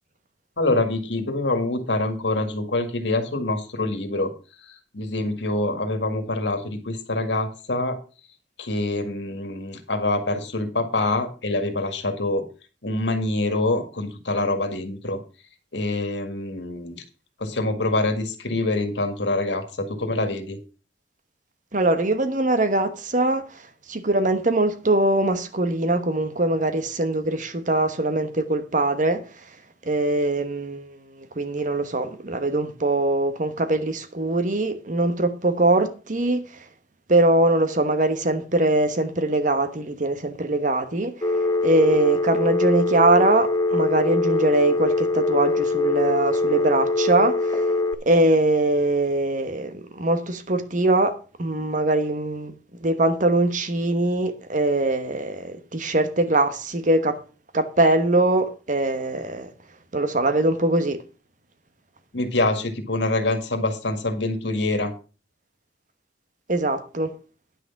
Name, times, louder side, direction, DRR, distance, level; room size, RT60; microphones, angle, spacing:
voice 1, 0.6-4.3 4.9-8.0 8.6-12.4 12.8-15.2 15.7-17.0 17.4-20.6 62.1-64.9, left 2 dB, 80° left, 1.9 m, -25 dB
voice 2, 21.7-23.4 23.9-29.2 29.9-36.4 37.1-41.1 41.6-47.6 48.1-52.5 52.8-57.2 57.5-59.5 59.9-61.0 66.5-67.1, right 2 dB, 45° right, 1.2 m, -22 dB
Telephone, 41.2-47.9, left 2 dB, 20° left, 0.7 m, -23 dB
9.9 x 6.3 x 5.8 m
head